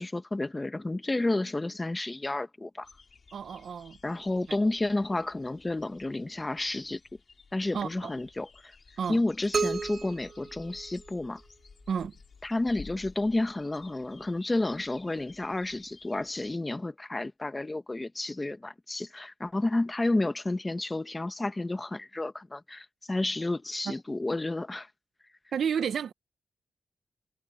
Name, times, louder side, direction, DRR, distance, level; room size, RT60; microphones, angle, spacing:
voice 1, 0.0-2.9 4.0-7.0 7.5-8.7 9.1-11.4 12.4-24.9, left 2 dB, 15° left, 1.2 m, -31 dB
sound 1, 2.8-16.6, left 4 dB, 40° left, 5.6 m, -55 dB
voice 2, 3.3-4.0 7.7-8.1 9.0-9.2 11.9-12.1 25.5-26.1, right 7 dB, 65° right, 0.9 m, -31 dB
sound 2, 9.5-11.4, right 5 dB, 45° right, 1.4 m, -33 dB
wide cardioid pair, 150°, 0 cm